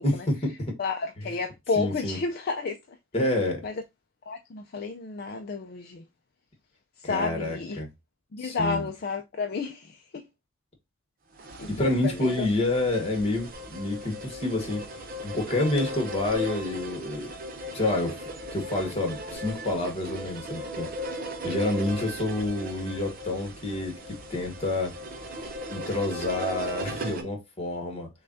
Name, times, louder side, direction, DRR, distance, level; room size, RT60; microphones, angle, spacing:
voice 1, 0.0-0.7 1.2-1.3 1.7-2.2 3.1-3.6 7.0-7.9 8.4-8.9 11.7-14.8 15.2-17.3 17.7-18.2 18.5-20.9 21.4-24.9 25.7-28.1, left 2 dB, 30° left, 1.3 m, -28 dB
voice 2, 0.8-2.8 3.6-3.7 4.3-6.0 7.0-7.8 8.3-10.2 11.6-12.5, left 4 dB, 50° left, 0.4 m, -31 dB
sound 1, 11.4-27.2, equal, 45° right, 0.7 m, -37 dB
6.5 x 2.3 x 2.6 m
head